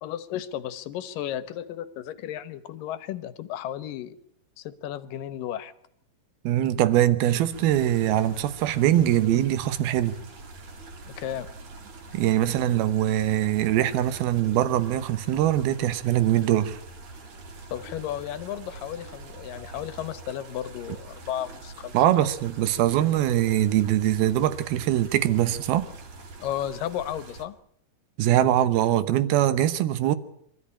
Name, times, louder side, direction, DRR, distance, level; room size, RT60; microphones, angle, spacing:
voice 1, 0.0-4.2 4.6-5.7 11.2-11.5 17.7-21.9 26.4-27.6, left 11 dB, 70° left, 2.5 m, -34 dB
voice 2, 6.4-10.2 12.1-16.8 21.9-25.9 28.2-30.2, right 12 dB, 80° right, 3.0 m, -22 dB
sound 1, 7.5-27.5, right 3 dB, 50° right, 3.1 m, -44 dB
24.5 x 13.5 x 9.9 m
omnidirectional pair, 4.4 m